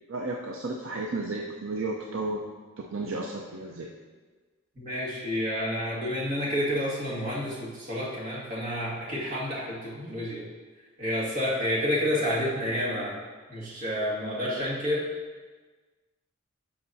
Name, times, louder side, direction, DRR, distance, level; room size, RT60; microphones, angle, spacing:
voice 1, 0.1-2.5 2.8-3.9, right 2 dB, 60° right, 0 dB, 0.5 m, -33 dB
voice 2, 4.8-10.4 11.0-13.2 13.5-15.0, equal, 40° right, -6 dB, 2.0 m, -29 dB
11.5 x 5.5 x 2.7 m, 1.4 s
head